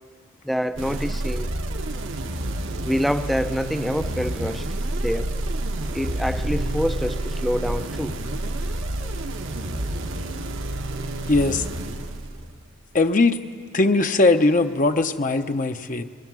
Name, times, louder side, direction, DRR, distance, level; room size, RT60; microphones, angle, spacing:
voice 1, 0.4-1.5 2.8-4.7 5.0-5.3 5.9-8.2, equal, ahead, 10 dB, 0.5 m, -26 dB
sound 1, 0.7-12.7, right 1 dB, 70° right, 1.3 m, -29 dB
voice 2, 11.3-11.7 12.9-13.4 13.7-16.0, left 3 dB, 40° left, 7 dB, 0.7 m, -20 dB
30.0 x 21.5 x 6.2 m, 2.1 s
head